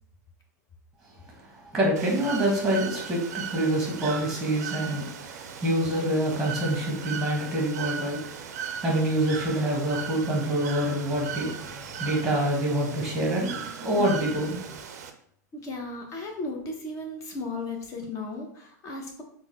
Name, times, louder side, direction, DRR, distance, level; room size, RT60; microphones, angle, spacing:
voice 1, 1.4-8.5 8.8-14.8, right 1 dB, 5° right, -2 dB, 1.1 m, -26 dB
Bird / Water, 2.0-15.1, right 7 dB, 60° right, 0.4 m, -38 dB
voice 2, 15.6-19.2, left 2 dB, 35° left, 2 dB, 0.9 m, -35 dB
3.6 x 2.2 x 3.2 m, 0.63 s
figure-of-eight pair, 95°, 10 cm